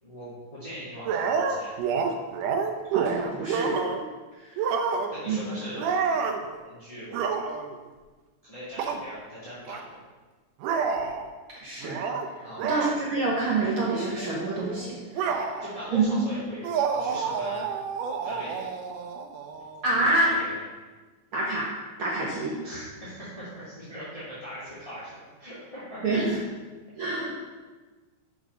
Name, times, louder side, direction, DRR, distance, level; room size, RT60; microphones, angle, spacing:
voice 1, 0.0-1.8 5.1-5.8 6.6-7.1 8.4-9.8 12.4-12.6 15.6-16.6 16.9-17.7 18.2-18.7 20.0-20.5 22.6-26.0 26.3-26.4, equal, 15° left, -12 dB, 1.4 m, -40 dB
sound 1, 1.1-4.1 4.6-5.3 5.7-6.4 7.1-7.8 8.8-9.0 9.7-9.8 10.6-11.3 11.8-12.3 12.6-12.9 13.5-13.7 14.0-15.8 16.6-20.0, right 5 dB, 75° right, 2.1 m, -29 dB
voice 2, 2.9-3.8 4.4-4.5 5.2-5.5 11.6-12.0 12.6-15.5 15.9-16.2 19.8-20.3 21.3-21.7 22.0-22.6 26.0-26.4 27.0-27.4, right 2 dB, 50° right, -6 dB, 1.6 m, -27 dB
7.4 x 5.8 x 5.3 m, 1.3 s
omnidirectional pair, 4.0 m